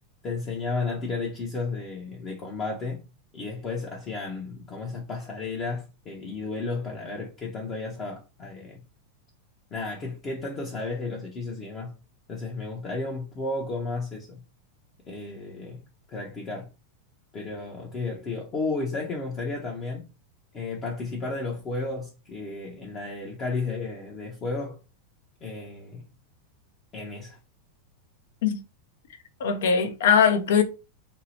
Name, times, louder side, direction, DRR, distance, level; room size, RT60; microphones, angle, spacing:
voice 1, 0.2-3.0 3.3-8.8 9.7-11.9 12.3-14.4 15.1-15.8 16.1-16.7 17.3-20.1 20.5-24.8 25.4-26.0 26.9-27.4, left 3 dB, 35° left, 0.6 m, -33 dB
voice 2, 29.4-30.6, left 7 dB, 70° left, 0.4 m, -21 dB
2.7 x 2.0 x 2.8 m
hypercardioid pair, 105°, 0 cm